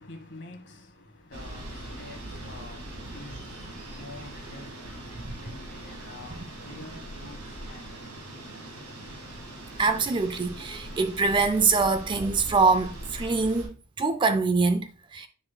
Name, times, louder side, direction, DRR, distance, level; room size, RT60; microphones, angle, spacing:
voice 1, 0.0-9.1, left 2 dB, 55° left, 1.3 m, -48 dB
sound 1, 1.3-13.7, right 1 dB, 85° right, 1.9 m, -41 dB
voice 2, 9.8-15.3, right 4 dB, 20° right, 0.3 m, -24 dB
9.5 x 5.0 x 2.2 m
head